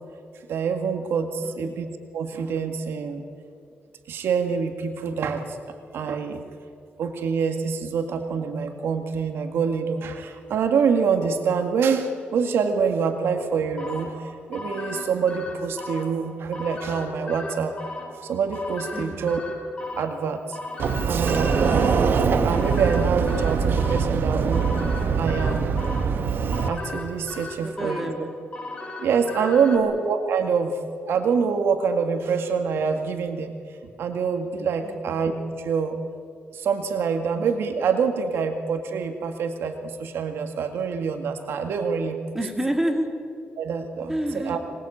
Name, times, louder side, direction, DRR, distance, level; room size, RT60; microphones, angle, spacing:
voice 1, 0.5-1.9 2.1-3.2 4.1-5.6 5.9-6.4 7.0-17.8 18.2-19.4 20.0-20.6 21.1-24.7 25.2-26.2 26.7-28.0 29.0-30.8 31.1-33.5 34.0-35.3 35.6-36.0 36.5-42.2 43.6-44.1 44.4-44.6, right 6 dB, 85° right, 6 dB, 2.1 m, -25 dB
sound 1, 13.8-29.8, left 2 dB, 30° left, 4.5 m, -37 dB
Sliding door, 20.8-26.7, right 5 dB, 65° right, 1.6 m, -23 dB
voice 2, 27.6-28.3 29.6-29.8 34.8-35.1 42.3-43.1 44.1-44.6, right 1 dB, 10° right, 3 dB, 3.1 m, -28 dB
25.5 x 20.5 x 8.7 m, 2.4 s
cardioid pair, 115°, 4 cm